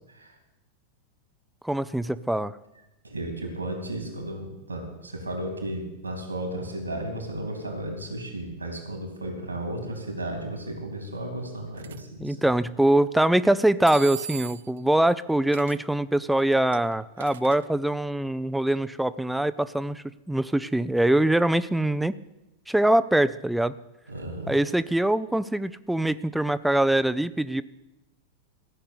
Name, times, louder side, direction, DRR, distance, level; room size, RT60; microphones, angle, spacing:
voice 1, 1.6-2.6 12.2-22.1 22.7-23.7 24.5-27.6, right 1 dB, 5° right, 15 dB, 0.5 m, -23 dB
voice 2, 3.0-12.5 24.1-24.5, right 1 dB, 80° right, 3 dB, 3.2 m, -34 dB
sound 1, 11.8-12.0 13.9-14.8 15.5-15.8 16.4-17.7, right 9 dB, 60° right, 0.5 m, -39 dB
15.0 x 6.6 x 8.4 m, 0.93 s
figure-of-eight pair, 90°, 0 cm